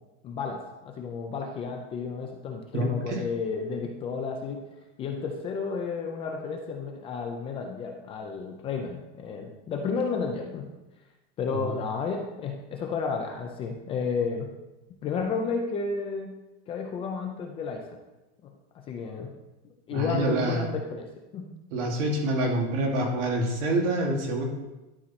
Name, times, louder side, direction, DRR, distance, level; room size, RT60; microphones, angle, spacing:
voice 1, 0.2-4.6 5.0-10.7 11.4-14.5 15.0-16.4 16.7-17.8 18.4-19.3 19.6-21.1 21.3-21.5, left 5 dB, 15° left, 2 dB, 0.3 m, -32 dB
voice 2, 2.7-3.2 11.6-11.7 19.9-20.6 21.7-24.4, right 1 dB, 85° right, 0 dB, 2.3 m, -26 dB
11.0 x 4.2 x 4.2 m, 1.0 s
supercardioid pair, 170°, 35 cm